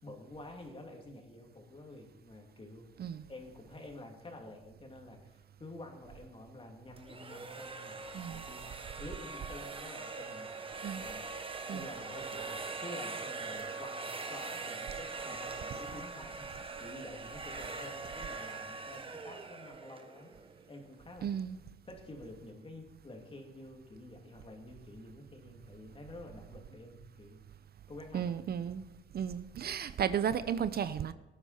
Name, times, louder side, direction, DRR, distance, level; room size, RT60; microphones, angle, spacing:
voice 1, 0.0-2.9 3.3-11.3 11.7-20.3 20.7-21.4 21.8-27.4 27.9-28.7, left 1 dB, 25° left, 2.9 m, -49 dB
sound 1, 7.0-20.8, right 4 dB, 25° right, 1.2 m, -42 dB
voice 2, 8.1-8.4 10.8-11.0 11.7-11.9 21.2-21.6 28.1-28.8 29.1-31.1, right 8 dB, 55° right, 0.6 m, -34 dB
18.0 x 9.4 x 4.4 m
cardioid pair, 90°, 20 cm